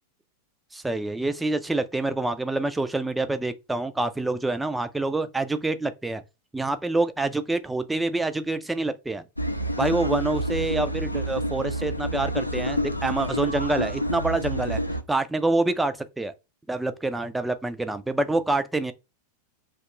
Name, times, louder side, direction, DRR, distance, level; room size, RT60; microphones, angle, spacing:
voice 1, 0.7-6.2 6.5-9.2 9.8-14.8 15.1-16.3 16.7-18.9, right 2 dB, 5° right, 0.3 m, -26 dB
sound 1, 9.4-15.0, equal, 85° left, 0.3 m, -28 dB
2.8 x 2.3 x 4.0 m
figure-of-eight pair, 90°, 0 cm